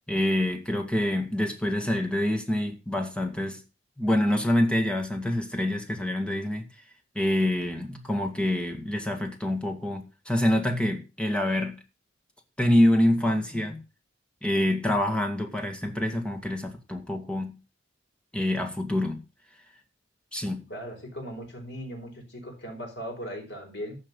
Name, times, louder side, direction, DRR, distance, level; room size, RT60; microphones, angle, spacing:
voice 1, 0.1-3.6 4.0-6.6 7.2-11.8 12.6-13.8 14.4-17.6 18.3-19.2 20.3-20.7, left 1 dB, 5° left, 2.0 m, -26 dB
voice 2, 20.7-24.0, equal, 60° left, 4.9 m, -38 dB
14.5 x 5.9 x 5.5 m
head